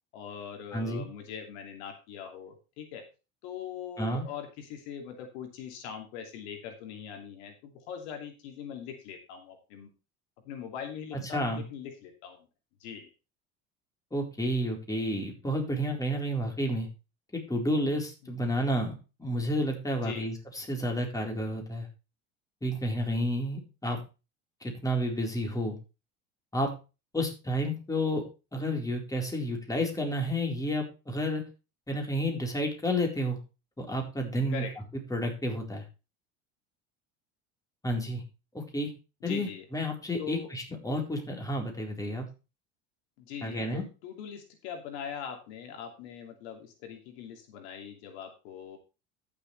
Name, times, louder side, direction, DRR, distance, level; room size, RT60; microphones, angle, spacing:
voice 1, 0.1-3.0 3.4-9.9 10.4-12.5 12.8-13.1 18.2-18.3 20.0-20.2 34.5-34.7 39.2-39.6 40.2-40.5 43.2-48.8, left 8 dB, 75° left, 4 dB, 2.7 m, -41 dB
voice 2, 0.7-1.1 4.0-4.3 11.1-11.6 14.1-16.9 17.3-18.9 19.2-21.9 22.6-24.0 24.6-25.8 26.5-26.7 27.1-28.3 28.5-31.4 31.9-33.4 33.8-34.6 35.1-35.8 37.8-38.2 38.5-38.9 39.2-42.2 43.4-43.8, equal, 10° left, 1 dB, 4.2 m, -30 dB
14.5 x 7.0 x 3.3 m, 0.30 s
supercardioid pair, 90°, 33 cm